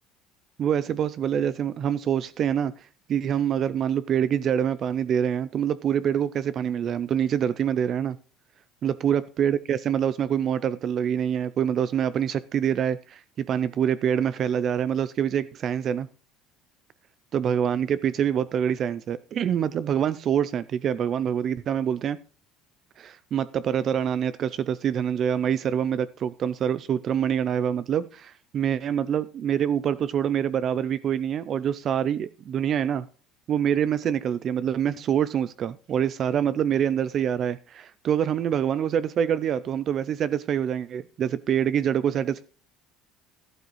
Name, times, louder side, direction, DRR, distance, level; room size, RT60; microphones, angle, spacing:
voice 1, 0.6-8.2 8.8-16.1 17.3-22.2 23.0-33.1 33.5-42.4, right 9 dB, 35° right, 0.4 m, -25 dB
12.0 x 12.0 x 3.1 m
cardioid pair, 150°, 0 cm